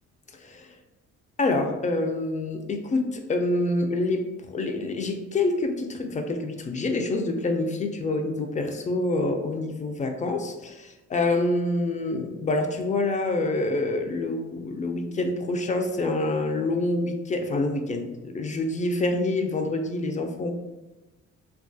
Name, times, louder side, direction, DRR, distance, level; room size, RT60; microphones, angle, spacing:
voice 1, 1.4-20.5, left 2 dB, 25° left, 5 dB, 0.3 m, -27 dB
2.8 x 2.3 x 2.5 m, 1.1 s
cardioid pair, 90°, 30 cm